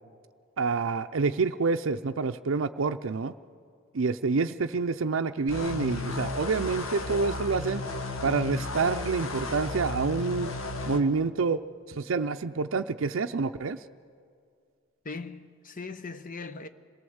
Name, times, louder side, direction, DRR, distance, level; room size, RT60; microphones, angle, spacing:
voice 1, 0.6-3.3 3.9-7.8 8.2-10.5 10.9-11.6 11.9-13.8, right 4 dB, 65° right, 0.5 m, -27 dB
sound 1, 5.5-11.0, left 2 dB, 80° left, 1.3 m, -34 dB
voice 2, 15.0-16.7, left 4 dB, 40° left, 0.9 m, -39 dB
26.0 x 18.0 x 7.9 m
head